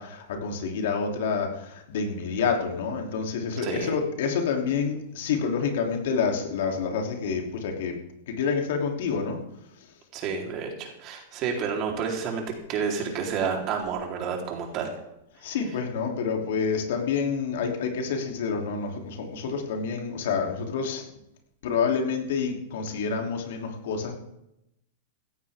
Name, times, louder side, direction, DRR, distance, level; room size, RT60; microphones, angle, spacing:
voice 1, 0.0-8.0 8.3-9.4 15.4-21.0 21.6-24.2, left 5 dB, 70° left, 2 dB, 3.1 m, -28 dB
voice 2, 3.6-4.0 10.1-12.4 12.7-14.9, right 6 dB, 40° right, 1 dB, 3.8 m, -30 dB
16.5 x 13.0 x 3.7 m, 0.84 s
hypercardioid pair, 115°, 0 cm